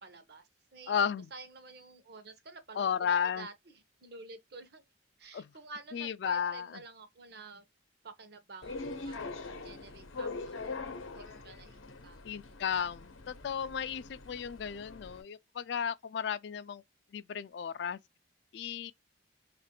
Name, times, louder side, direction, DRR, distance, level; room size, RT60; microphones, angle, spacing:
voice 1, 0.0-0.9 1.3-3.5 4.0-4.8 5.2-7.7 8.0-8.8 9.0-12.2, right 3 dB, 55° right, 0.7 m, -50 dB
voice 2, 0.9-1.3 2.8-3.5 5.3-5.5 5.9-6.7 12.2-16.8 17.1-18.0 18.5-18.9, left 7 dB, 60° left, 0.3 m, -34 dB
sound 1, 8.6-15.2, left 3 dB, 85° left, 0.7 m, -43 dB
2.9 x 2.5 x 4.2 m
head